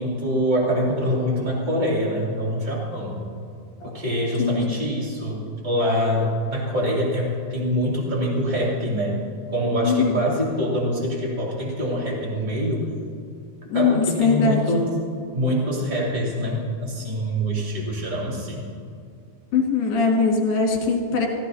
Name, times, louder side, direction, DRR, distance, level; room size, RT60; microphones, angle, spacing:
voice 1, 0.0-3.2 3.8-9.2 9.5-12.9 13.7-14.9 15.3-18.6, equal, 15° right, -4 dB, 2.0 m, -24 dB
voice 2, 4.4-4.8 9.8-10.2 13.7-14.7 19.5-21.3, left 4 dB, 75° left, 0 dB, 3.8 m, -21 dB
15.5 x 15.5 x 2.7 m, 2.3 s
omnidirectional pair, 4.7 m